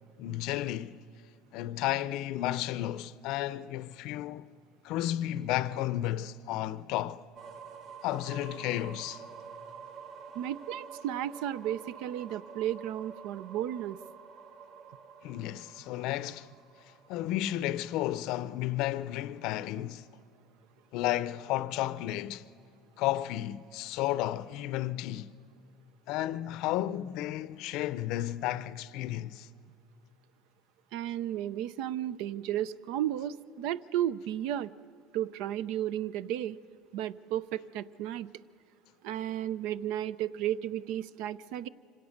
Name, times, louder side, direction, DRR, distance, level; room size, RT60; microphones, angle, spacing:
voice 1, 0.2-1.0 1.5-4.5 4.8-7.2 8.0-9.2 15.2-16.5 17.1-20.0 20.9-22.4 23.0-25.3 26.1-29.5, left 14 dB, 65° left, 0.6 m, -32 dB
sound 1, 7.3-19.1, right 6 dB, 50° right, 1.1 m, -49 dB
voice 2, 10.3-14.0 30.9-34.7 35.1-36.6 36.9-38.3 39.0-41.7, right 11 dB, 75° right, 0.5 m, -33 dB
25.5 x 17.0 x 6.5 m
cardioid pair, 125°, 0 cm